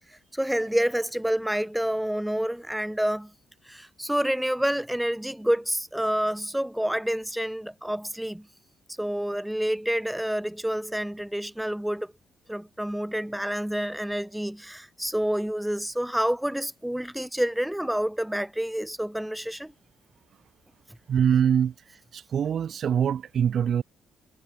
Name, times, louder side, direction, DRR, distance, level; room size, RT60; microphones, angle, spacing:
voice 1, 0.3-3.3 3.7-8.5 9.0-12.1 12.5-19.7, equal, 5° right, 0.3 m, -28 dB
voice 2, 21.1-21.7 22.1-23.8, right 8 dB, 60° right, 0.7 m, -23 dB
cardioid pair, 90°, 0 cm